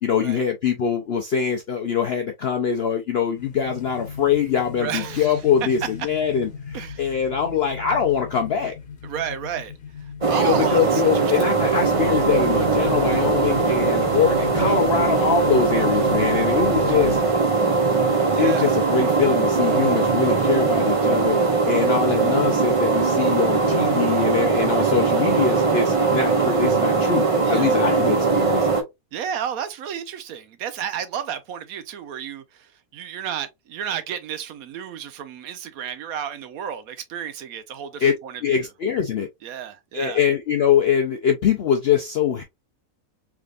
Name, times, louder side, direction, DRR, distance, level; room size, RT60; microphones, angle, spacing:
voice 1, 0.0-8.7 10.3-17.2 18.4-21.4 21.7-28.7 38.0-38.1 38.4-39.3 39.9-42.4, left 7 dB, 70° left, 0.6 m, -23 dB
sound 1, 3.3-17.6, left 6 dB, 40° left, 1.0 m, -36 dB
voice 2, 4.8-5.4 6.7-7.2 9.0-9.7 10.3-11.0 11.4-11.5 18.3-18.8 24.7-24.9 27.5-27.8 29.1-32.7 32.9-38.7 39.4-40.2, right 9 dB, 70° right, 1.0 m, -32 dB
sound 2, 10.2-28.8, right 4 dB, 35° right, 0.6 m, -20 dB
3.5 x 3.3 x 2.4 m
omnidirectional pair, 1.6 m